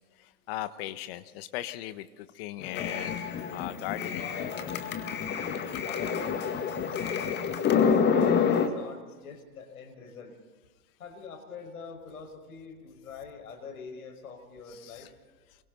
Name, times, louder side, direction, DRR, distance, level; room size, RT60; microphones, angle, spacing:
voice 1, 0.5-3.2 3.5-4.3 7.0-7.1 14.7-15.1, left 14 dB, 35° left, 12 dB, 1.3 m, -38 dB
sound 1, 2.6-8.7, left 6 dB, 20° left, 2.1 m, -28 dB
voice 2, 5.8-10.3 11.0-15.1, left 5 dB, 65° left, 5 dB, 5.5 m, -45 dB
28.0 x 24.0 x 4.1 m, 1.3 s
figure-of-eight pair, 115°, 48 cm